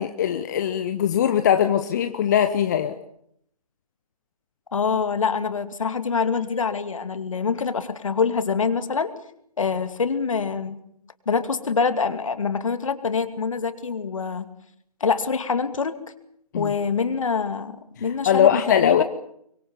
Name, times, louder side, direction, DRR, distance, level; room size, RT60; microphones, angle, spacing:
voice 1, 0.0-3.0 16.5-16.7 18.3-19.0, left 9 dB, 30° left, 8 dB, 1.0 m, -21 dB
voice 2, 4.7-9.1 9.6-10.8 11.3-14.5 15.0-15.9 16.5-19.0, left 5 dB, 55° left, 10 dB, 2.5 m, -25 dB
24.5 x 23.5 x 7.1 m, 0.71 s
figure-of-eight pair, 145°, 20 cm